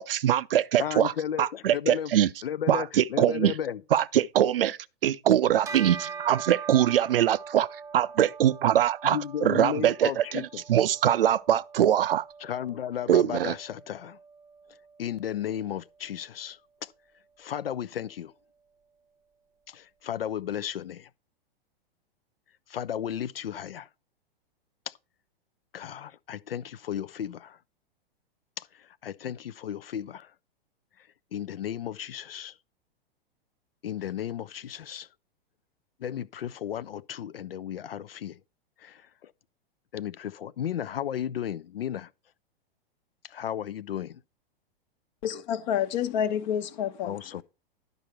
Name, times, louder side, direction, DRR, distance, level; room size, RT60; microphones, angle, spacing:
voice 1, 0.0-1.1 1.4-2.3 2.7-3.5 3.9-7.7 7.9-12.2 13.1-13.5, right 11 dB, 70° right, 0.5 m, -23 dB
voice 2, 0.8-2.1 2.4-3.8 9.0-10.6 12.4-14.2 15.0-16.9 17.4-18.3 19.7-21.1 22.7-23.9 24.9-25.0 25.7-27.6 28.6-30.3 31.3-32.6 33.8-35.1 36.0-38.4 38.8-39.3 39.9-42.1 43.2-44.2 47.0-47.4, left 9 dB, 75° left, 0.5 m, -34 dB
Bell, 5.6-15.3, right 5 dB, 10° right, 0.5 m, -43 dB
voice 3, 45.2-47.1, left 9 dB, 50° left, 1.1 m, -28 dB
11.0 x 5.3 x 4.5 m
figure-of-eight pair, 105°, 30 cm